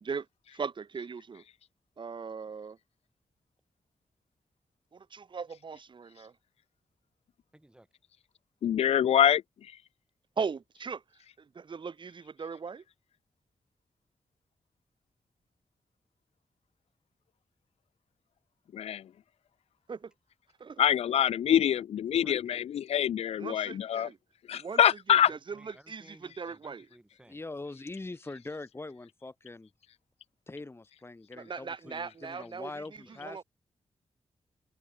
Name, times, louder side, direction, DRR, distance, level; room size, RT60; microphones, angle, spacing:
voice 1, 0.5-1.4 2.0-2.8 4.9-6.3 10.4-11.0 11.4-12.8 19.9-20.1 20.6-20.8 23.4-24.2 24.5-24.8 25.1-26.9 31.4-33.4, right 5 dB, 50° right, 2.2 m, -39 dB
voice 2, 7.5-7.9 22.2-22.4 26.0-27.4, right 1 dB, 10° right, 1.1 m, -57 dB
voice 3, 8.6-9.4 18.7-19.1 20.8-24.1 24.5-25.3, left 10 dB, 80° left, 0.4 m, -25 dB
voice 4, 27.2-29.7 30.5-33.4, left 2 dB, 25° left, 4.5 m, -43 dB
wide cardioid pair, 110°, 11 cm